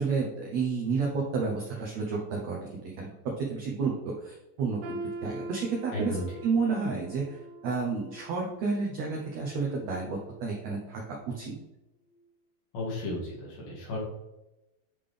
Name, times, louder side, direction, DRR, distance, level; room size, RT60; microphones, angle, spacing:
voice 1, 0.0-3.1 3.4-6.2 6.4-11.0 11.3-11.5, right 4 dB, 85° right, -1 dB, 1.5 m, -31 dB
sound 1, 4.8-10.8 11.2-11.4 12.1-12.2, right 1 dB, 60° right, 2.3 m, -44 dB
voice 2, 5.9-6.4 12.7-14.0, left 1 dB, 75° left, -4 dB, 3.8 m, -34 dB
8.5 x 3.8 x 3.3 m, 0.96 s
omnidirectional pair, 4.2 m